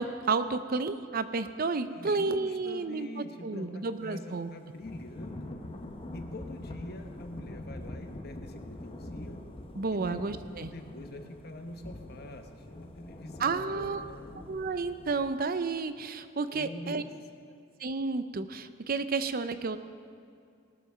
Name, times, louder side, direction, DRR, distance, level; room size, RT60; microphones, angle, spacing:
voice 1, 0.0-4.5 9.7-10.7 13.4-14.0 14.5-17.0 17.8-19.8, right 4 dB, 45° right, 11 dB, 0.6 m, -31 dB
voice 2, 1.9-5.6 6.1-9.4 9.9-14.3 16.5-17.1, left 1 dB, 55° left, 6 dB, 1.1 m, -45 dB
Thunder / Rain, 4.8-15.4, left 1 dB, 30° left, 0.9 m, -44 dB
19.0 x 7.0 x 6.3 m, 2.4 s
head